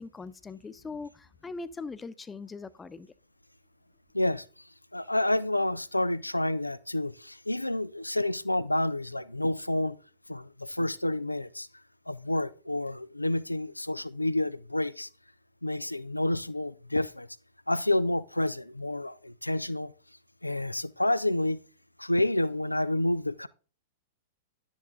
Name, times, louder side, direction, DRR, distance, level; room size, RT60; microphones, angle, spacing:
voice 1, 0.0-3.1, left 4 dB, 15° left, 0.9 m, -41 dB
voice 2, 4.1-4.5 4.9-10.0 10.3-11.7 12.1-15.1 15.6-17.3 17.7-19.9 20.4-21.6 22.0-23.5, left 1 dB, 90° left, 0.6 m, -29 dB
12.0 x 9.8 x 3.8 m
figure-of-eight pair, 100°, 0 cm